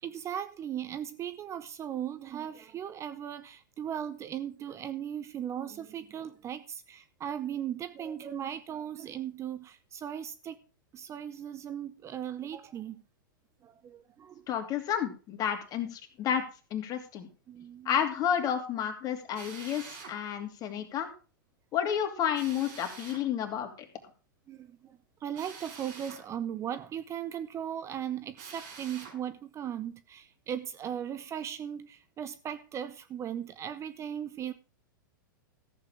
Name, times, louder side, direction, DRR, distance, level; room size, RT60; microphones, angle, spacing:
voice 1, 0.0-10.6 10.9-13.0 13.6-14.5 17.5-18.0 24.5-34.5, right 9 dB, 25° right, 0.7 m, -38 dB
voice 2, 14.5-16.4 16.7-17.3 17.8-21.1 21.7-23.9, left 9 dB, 35° left, 2.7 m, -31 dB
Drill, 19.3-20.2 22.3-23.2 25.3-26.2 28.3-29.2, right 5 dB, 55° right, 6.0 m, -46 dB
14.0 x 8.2 x 4.8 m
hypercardioid pair, 115°, 11 cm